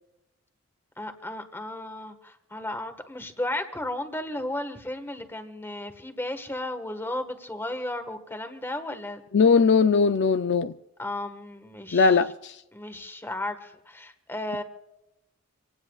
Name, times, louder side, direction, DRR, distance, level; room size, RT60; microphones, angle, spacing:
voice 1, 1.0-9.2 11.0-12.2 12.7-14.6, left 1 dB, 10° left, 1.4 m, -34 dB
voice 2, 9.3-10.7 11.9-12.5, left 5 dB, 60° left, 0.4 m, -20 dB
26.5 x 17.5 x 2.4 m
head